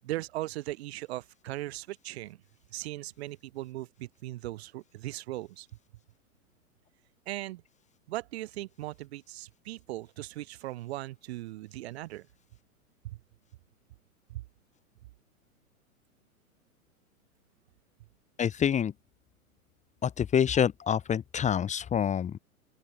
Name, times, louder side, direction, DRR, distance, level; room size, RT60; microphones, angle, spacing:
voice 1, 0.0-2.4 2.7-5.7 7.2-7.6 8.1-12.3 13.0-13.2 14.3-14.4, right 17 dB, 45° right, 6.8 m, -38 dB
voice 2, 18.4-18.9 20.0-22.4, left 8 dB, 15° left, 2.7 m, -27 dB
open air
figure-of-eight pair, 105°, 43 cm